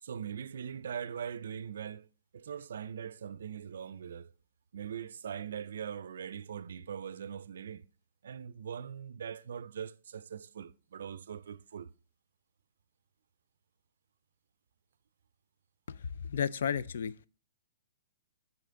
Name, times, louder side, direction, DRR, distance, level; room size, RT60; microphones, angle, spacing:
voice 1, 0.0-2.1 2.3-4.3 4.7-7.8 8.2-11.9, right 8 dB, 75° right, 0.4 m, -41 dB
voice 2, 15.9-17.3, left 7 dB, 65° left, 0.4 m, -33 dB
5.8 x 5.6 x 3.7 m
hypercardioid pair, 165°, 0 cm